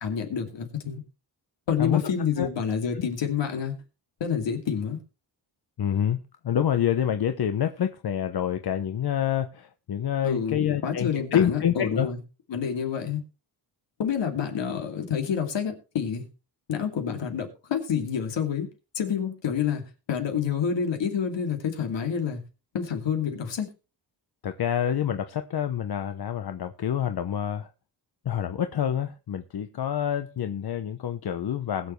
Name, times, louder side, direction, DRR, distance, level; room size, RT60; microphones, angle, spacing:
voice 1, 0.0-1.0 1.7-3.8 4.2-5.0 10.2-12.2 12.5-13.2 14.0-16.3 16.7-18.7 18.9-22.4 22.7-23.7, left 7 dB, 75° left, 2.7 m, -28 dB
voice 2, 5.8-6.2 6.4-12.1 24.4-27.7 28.2-31.9, left 9 dB, 60° left, 0.9 m, -27 dB
21.0 x 7.1 x 3.2 m
wide cardioid pair, 140°, 44 cm